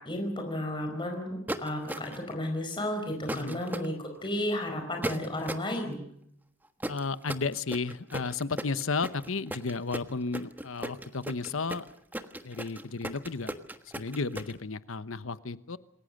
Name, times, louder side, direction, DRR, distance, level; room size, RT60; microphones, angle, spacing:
voice 1, 0.0-6.0, left 1 dB, 25° left, 3 dB, 4.9 m, -33 dB
sound 1, 1.5-2.3 3.3-3.9 5.0-5.7 6.8-14.5, right 1 dB, 10° right, 1.3 m, -36 dB
voice 2, 3.3-3.6 6.9-11.8 12.4-13.5 13.9-15.8, left 4 dB, 85° left, 14 dB, 1.0 m, -33 dB
27.5 x 21.0 x 6.6 m, 0.74 s
head